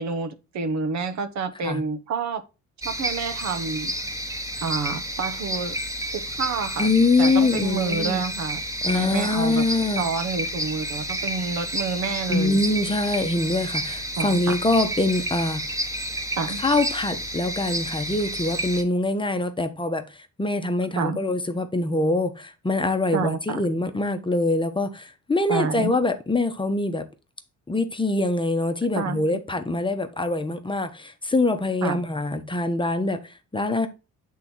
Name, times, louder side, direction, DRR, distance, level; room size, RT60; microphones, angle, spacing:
voice 1, 0.0-2.4 2.8-3.9 4.6-5.8 6.1-6.9 7.2-8.6 8.9-9.6 10.0-12.6 14.2-14.6 16.4-16.6 21.0-21.2 23.1-23.6 25.5-25.9 29.0-29.4 31.8-32.0, right 5 dB, 65° right, 1.0 m, -28 dB
sound 1, 2.8-18.8, right 1 dB, 10° right, 1.2 m, -30 dB
voice 2, 6.8-8.2 8.8-10.1 12.3-15.6 16.6-27.1 27.7-33.9, left 2 dB, 15° left, 0.9 m, -24 dB
7.6 x 3.7 x 4.3 m
cardioid pair, 90°, 30 cm